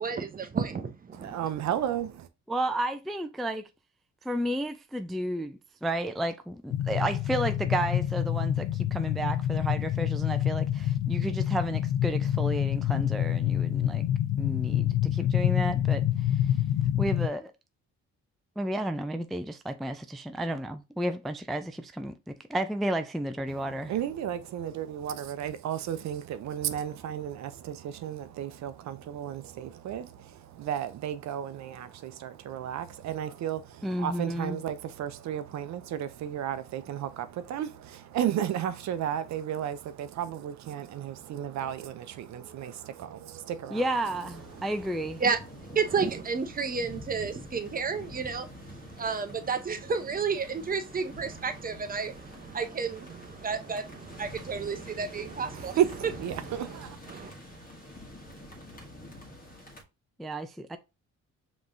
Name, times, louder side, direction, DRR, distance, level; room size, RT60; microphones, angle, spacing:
voice 1, 0.0-1.4 45.2-45.4 45.7-55.8 56.3-56.8 57.1-57.3, right 5 dB, 30° right, 0.7 m, -32 dB
voice 2, 1.1-2.3 23.9-43.8 55.5-57.0, right 10 dB, 65° right, 0.5 m, -33 dB
voice 3, 2.5-3.6 4.2-14.0 14.4-16.4 17.0-17.5 18.6-23.9 33.8-34.6 43.7-45.2 60.2-60.8, right 1 dB, ahead, 0.3 m, -32 dB
sound 1, 6.7-17.3, left 11 dB, 75° left, 0.5 m, -27 dB
sound 2, 44.0-59.8, equal, 30° left, 1.4 m, -46 dB
5.1 x 3.0 x 2.6 m
cardioid pair, 90°, 30 cm